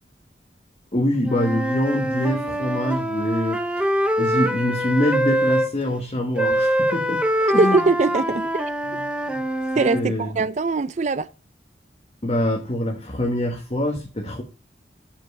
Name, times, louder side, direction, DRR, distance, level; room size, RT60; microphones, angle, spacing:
voice 1, 0.9-3.9 4.2-7.2 7.5-7.8 8.9-9.4 9.9-10.3 12.2-14.4, left 1 dB, 35° left, 1.3 m, -24 dB
Wind instrument woodwind instrument, 1.2-5.7 6.4-10.0, equal, 5° right, 0.8 m, -24 dB
voice 2, 7.4-8.7 9.8-11.3, right 3 dB, 40° right, 0.4 m, -21 dB
7.3 x 5.4 x 6.5 m
head